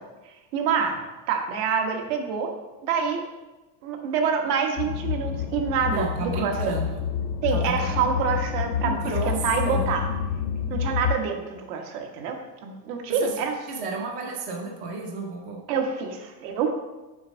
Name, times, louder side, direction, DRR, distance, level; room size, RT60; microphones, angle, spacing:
voice 1, 0.5-1.0 1.3-2.5 2.8-3.2 3.8-6.7 7.4-9.0 9.3-10.1 10.7-13.6 15.7-16.7, right 6 dB, 70° right, 3 dB, 1.3 m, -26 dB
sound 1, 4.8-11.2, left 8 dB, 75° left, 0.7 m, -28 dB
voice 2, 5.9-7.0 7.5-8.0 8.8-9.3 9.6-9.9 13.1-13.4 13.7-15.6, right 3 dB, 20° right, 0 dB, 0.3 m, -32 dB
6.3 x 4.3 x 6.1 m, 1.1 s
cardioid pair, 175°, 48 cm